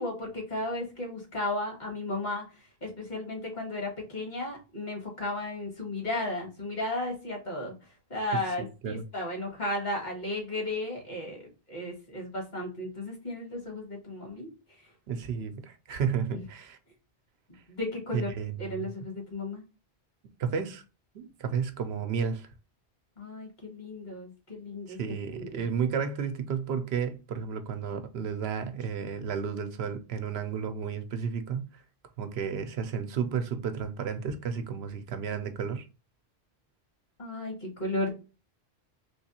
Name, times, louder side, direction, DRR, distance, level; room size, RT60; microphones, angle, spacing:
voice 1, 0.0-2.4 2.8-7.7 8.1-14.5 16.3-16.4 17.7-18.3 18.6-19.6 23.2-25.0 25.3-25.6 37.2-38.1, left 2 dB, 45° left, 1.6 m, -34 dB
voice 2, 8.3-9.0 15.1-16.8 18.1-18.9 20.4-20.8 21.1-22.5 24.9-31.8 32.2-35.9, right 6 dB, 75° right, 0.8 m, -32 dB
3.4 x 3.0 x 2.8 m
omnidirectional pair, 1.1 m